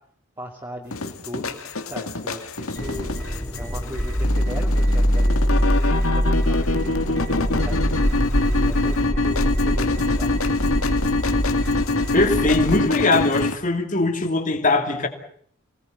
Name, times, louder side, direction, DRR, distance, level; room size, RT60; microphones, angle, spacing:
voice 1, 0.4-3.1 3.6-8.0 8.4-10.3, equal, 15° right, -2 dB, 2.6 m, -38 dB
sound 1, 0.9-13.5, left 3 dB, 85° left, 2.2 m, -25 dB
sound 2, 2.8-12.8, equal, 10° left, 2.8 m, -23 dB
voice 2, 12.1-15.1, left 2 dB, 35° left, 5 dB, 2.7 m, -21 dB
24.5 x 18.0 x 8.0 m, 0.63 s
head